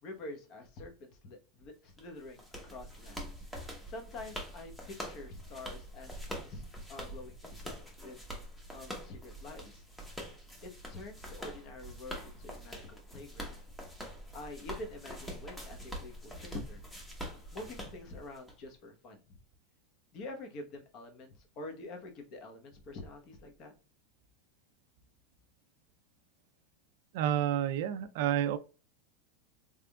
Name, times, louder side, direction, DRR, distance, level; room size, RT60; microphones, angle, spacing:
voice 1, 0.0-3.3 3.9-8.3 8.7-9.8 10.6-13.6 14.3-16.9 17.5-19.4 20.1-23.7, left 2 dB, 40° left, 1.0 m, -47 dB
sound 1, 2.0-18.5, equal, 5° left, 1.0 m, -45 dB
voice 2, 27.1-28.6, right 10 dB, 65° right, 0.4 m, -29 dB
3.6 x 3.5 x 2.2 m
supercardioid pair, 150°, 0 cm